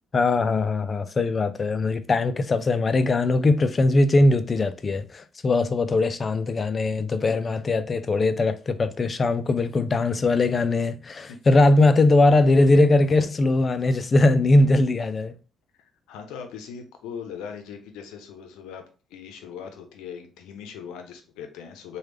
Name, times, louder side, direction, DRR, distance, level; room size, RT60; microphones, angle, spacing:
voice 1, 0.1-15.3, left 2 dB, 40° left, 0.4 m, -20 dB
voice 2, 15.8-18.8 19.1-22.0, left 7 dB, 85° left, 0.6 m, -40 dB
3.3 x 2.3 x 3.2 m
supercardioid pair, 60°, 0 cm